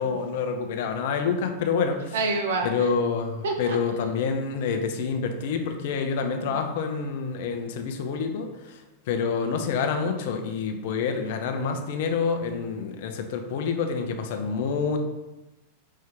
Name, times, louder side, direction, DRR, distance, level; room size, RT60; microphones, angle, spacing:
voice 1, 0.0-2.2 2.6-8.5 9.1-15.0, left 5 dB, 50° left, 5 dB, 0.5 m, -27 dB
voice 2, 2.1-2.9 3.4-3.8 6.2-6.6, right 3 dB, 60° right, 4 dB, 0.7 m, -28 dB
5.5 x 2.7 x 3.6 m, 1.0 s
figure-of-eight pair, 90°, 0 cm